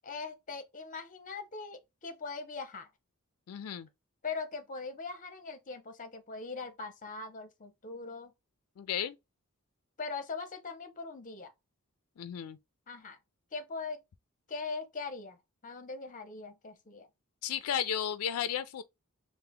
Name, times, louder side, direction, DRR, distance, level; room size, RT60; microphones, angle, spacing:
voice 1, 0.0-2.9 4.2-8.3 10.0-11.5 12.9-13.2 13.5-14.0 14.5-15.4 15.6-17.1, left 4 dB, 35° left, 0.7 m, -41 dB
voice 2, 3.5-3.9 8.8-9.2 12.2-12.6 17.4-18.8, left 9 dB, 85° left, 0.4 m, -34 dB
3.3 x 2.1 x 3.5 m
head